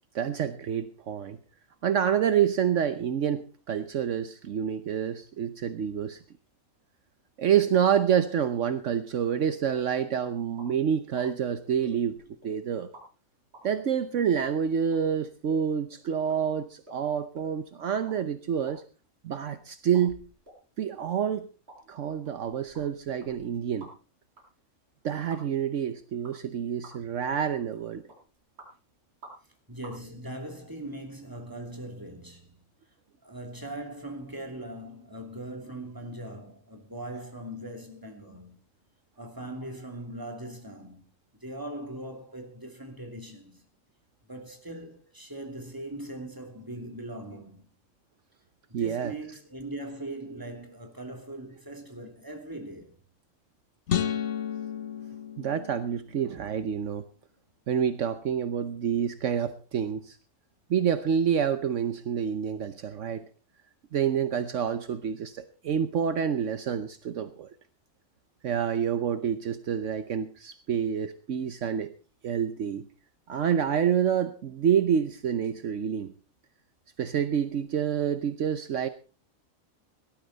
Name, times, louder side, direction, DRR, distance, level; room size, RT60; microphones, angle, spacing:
voice 1, 0.1-1.4 1.8-6.2 7.4-12.9 13.6-18.8 19.2-20.2 20.8-21.5 21.9-23.9 25.0-28.0 48.7-49.1 55.4-57.0 57.7-60.2 60.7-63.2 63.9-67.5 68.4-71.9 72.2-72.9 73.3-76.1 77.0-78.9, right 8 dB, 70° right, 1.2 m, -28 dB
sound 1, 10.6-10.7 11.2-11.3 11.8-12.5 12.9-13.0 13.5-13.6 14.3-14.4 14.9-15.0 15.5-15.6 15.9-16.0 16.3-16.4 16.9-17.0 17.3-17.5 17.9-18.2 18.4-19.4 19.9-20.6 21.0-21.1 21.7-21.8 22.2-24.1 24.4-24.5 25.3-25.4 26.2-26.5 26.8-27.1 27.5-27.7 28.1-28.7 29.2-29.5 29.8-29.9, right 2 dB, 55° right, 5.5 m, -50 dB
voice 2, 29.7-32.6 33.2-38.6 39.2-41.0 41.4-43.6 44.3-47.7 48.8-53.0, right 1 dB, 15° right, 2.9 m, -40 dB
sound 2, 53.9-56.2, left 9 dB, 65° left, 1.3 m, -32 dB
18.0 x 13.0 x 4.0 m
omnidirectional pair, 1.3 m